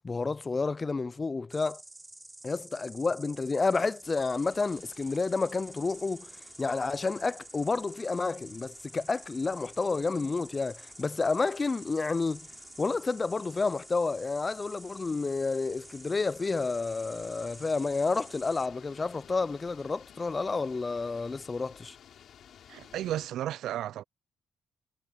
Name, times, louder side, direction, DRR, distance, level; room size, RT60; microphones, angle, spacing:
voice 1, 0.0-1.8 2.4-6.3 6.6-12.5 12.8-22.0, left 4 dB, 30° left, 0.3 m, -30 dB
Insect, 1.5-18.7, right 1 dB, 10° right, 4.7 m, -50 dB
sound 1, 4.0-23.3, left 9 dB, 65° left, 6.7 m, -57 dB
voice 2, 22.7-24.0, right 12 dB, 80° right, 0.3 m, -33 dB
cardioid pair, 90°, 0 cm